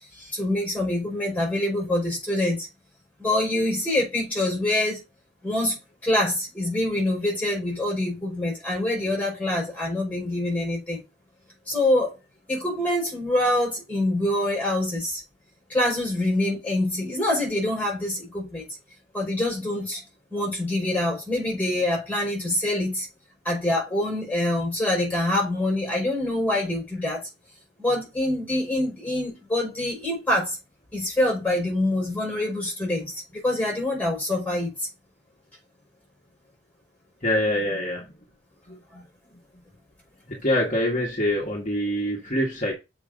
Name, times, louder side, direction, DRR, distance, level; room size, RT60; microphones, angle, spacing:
voice 1, 0.2-2.7 3.2-5.0 5.4-5.8 6.0-11.0 11.7-12.2 12.5-15.2 15.7-18.6 19.1-20.0 20.3-23.1 23.5-27.2 27.8-30.6 30.9-34.9, left 1 dB, 10° left, 5.3 m, -25 dB
voice 2, 37.2-38.1 38.7-39.0 40.3-42.7, left 1 dB, 40° left, 1.8 m, -25 dB
7.1 x 5.2 x 5.3 m
head